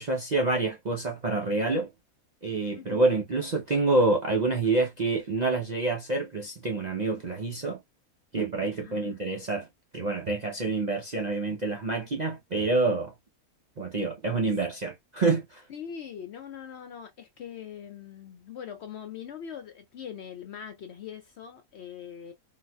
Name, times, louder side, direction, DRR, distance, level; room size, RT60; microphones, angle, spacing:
voice 1, 0.0-1.9 2.4-7.8 8.3-9.7 9.9-13.1 13.8-15.6, right 3 dB, 55° right, 0.4 m, -27 dB
voice 2, 2.7-3.1 8.8-9.2 15.7-22.3, left 8 dB, 65° left, 0.7 m, -42 dB
3.8 x 2.6 x 2.2 m
omnidirectional pair, 1.5 m